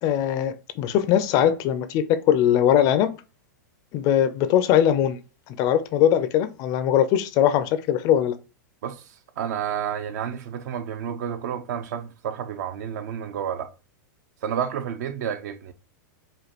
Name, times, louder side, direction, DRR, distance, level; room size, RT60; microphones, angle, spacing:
voice 1, 0.0-3.1 3.9-5.2 5.5-8.3, left 10 dB, 40° left, 0.4 m, -21 dB
voice 2, 9.4-13.7 14.4-15.7, right 8 dB, 65° right, 0.6 m, -30 dB
5.0 x 2.2 x 2.9 m
hypercardioid pair, 135°, 10 cm